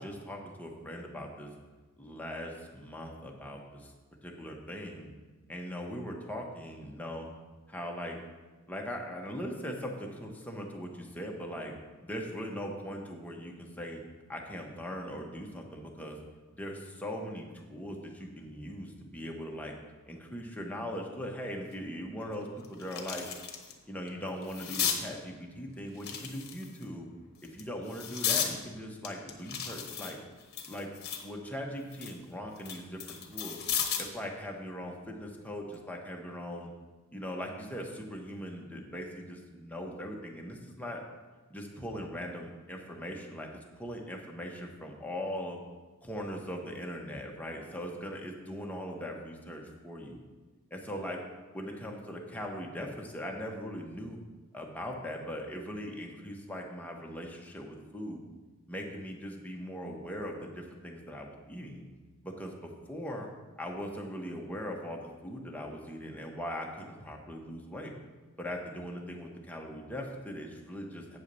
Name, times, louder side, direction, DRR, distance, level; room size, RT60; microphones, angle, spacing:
voice 1, 0.0-1.5 2.0-3.9 4.2-5.1 5.5-7.3 7.7-8.2 8.7-11.7 12.0-14.0 14.3-16.2 16.6-19.7 20.1-23.2 23.9-27.1 27.4-30.2 30.7-30.9 31.2-33.6 34.0-36.7 37.1-41.0 41.5-43.5 43.8-45.6 46.0-50.2 50.7-51.2 51.5-54.2 54.5-58.2 58.7-61.8 62.2-63.3 63.6-67.9 68.4-71.2, equal, 5° left, 0 dB, 1.0 m, -40 dB
sound 1, 21.7-21.8 22.3-23.7 24.1-25.0 25.9-26.8 27.4-28.5 29.0-31.3 31.7-34.2 35.5-35.7, left 8 dB, 50° left, 1.1 m, -35 dB
8.5 x 4.6 x 6.7 m, 1.3 s
head